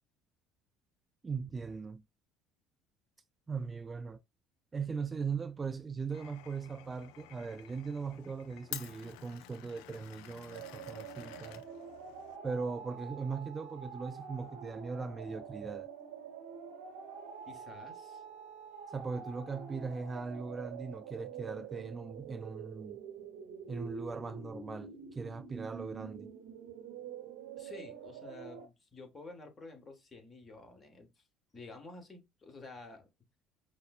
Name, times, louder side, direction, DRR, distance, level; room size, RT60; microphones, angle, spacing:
voice 1, 1.2-2.0 3.5-4.2 4.7-11.6 12.4-15.9 18.9-23.0 23.7-26.3, right 5 dB, 25° right, 0.3 m, -39 dB
Glass, 6.1-12.4, left 12 dB, 75° left, 0.3 m, -50 dB
sound 1, 10.5-28.7, right 6 dB, 70° right, 0.9 m, -47 dB
voice 2, 17.5-18.2 27.6-31.3 31.5-33.1, left 3 dB, 30° left, 1.4 m, -51 dB
5.1 x 2.0 x 2.4 m
hypercardioid pair, 65°, 0 cm